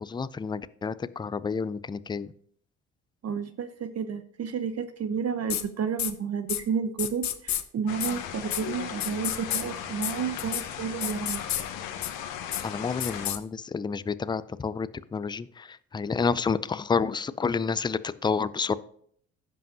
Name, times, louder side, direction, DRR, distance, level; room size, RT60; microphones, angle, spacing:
voice 1, 0.0-2.3 12.6-18.7, left 5 dB, 10° left, 16 dB, 0.4 m, -29 dB
voice 2, 3.2-11.4, right 6 dB, 40° right, 11 dB, 0.7 m, -31 dB
sound 1, 5.5-5.6 6.0-6.1 6.5-6.6 7.0-7.6 8.0-8.1 8.5-8.6 9.0-9.6 10.0-10.1 10.4-10.6 11.0-11.6 12.0-12.1 12.5-12.6 13.0-13.4, left 10 dB, 45° left, 0.9 m, -29 dB
sound 2, 7.9-13.3, left 9 dB, 70° left, 1.2 m, -37 dB
15.5 x 5.4 x 2.7 m, 0.63 s
hypercardioid pair, 60°, 38 cm